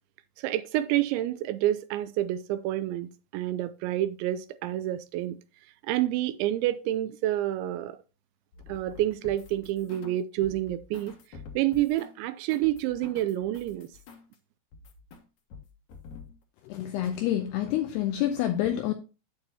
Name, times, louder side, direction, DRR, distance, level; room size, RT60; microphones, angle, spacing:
voice 1, 0.4-5.4 5.8-8.0 8.7-11.1 11.6-13.9, right 14 dB, 85° right, 2.7 m, -28 dB
sound 1, 8.5-10.2 10.4-14.3 14.7-15.2 15.5-16.3, left 5 dB, 65° left, 2.0 m, -48 dB
voice 2, 16.6-18.9, left 12 dB, 90° left, 2.3 m, -28 dB
8.9 x 8.7 x 2.8 m
omnidirectional pair, 5.5 m